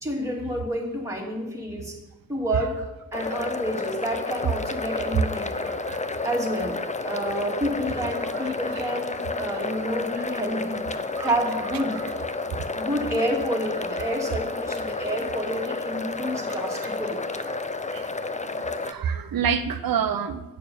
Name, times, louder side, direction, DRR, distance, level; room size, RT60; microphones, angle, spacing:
voice 1, 0.0-2.0 2.3-5.7 6.2-6.8 7.0-10.8 11.2-12.0 12.7-17.2, equal, 10° right, -3 dB, 2.4 m, -29 dB
sound 1, 3.1-18.9, left 3 dB, 20° left, 0.5 m, -31 dB
voice 2, 5.6-6.0 8.3-8.8 11.1-11.3 11.9-12.1 12.5-12.7 16.2-16.6 16.8-17.0 17.9-18.1 18.6-20.4, right 7 dB, 70° right, 9 dB, 0.7 m, -29 dB
8.4 x 6.7 x 7.0 m, 1.1 s
wide cardioid pair, 90°, 36 cm